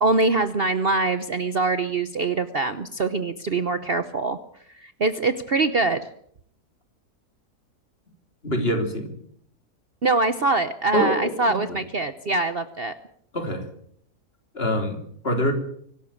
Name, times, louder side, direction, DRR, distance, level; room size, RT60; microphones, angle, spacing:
voice 1, 0.0-4.4 4.7-6.0 10.0-12.9, right 3 dB, 45° right, 11 dB, 1.0 m, -23 dB
voice 2, 8.4-9.1 10.9-11.8 13.3-13.7 14.5-15.5, equal, 35° left, 5 dB, 3.5 m, -25 dB
25.0 x 12.5 x 8.6 m, 0.67 s
omnidirectional pair, 1.7 m